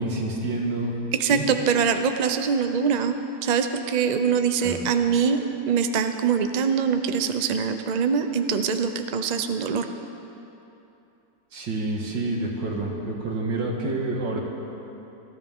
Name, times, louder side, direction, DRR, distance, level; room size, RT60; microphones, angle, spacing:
voice 1, 0.0-1.4 4.6-4.8 11.5-14.4, right 2 dB, 90° right, -1 dB, 2.5 m, -28 dB
voice 2, 1.2-3.2 3.4-5.4 5.7-9.9, right 6 dB, 65° right, 7 dB, 0.4 m, -23 dB
22.0 x 13.5 x 3.7 m, 2.9 s
omnidirectional pair, 1.9 m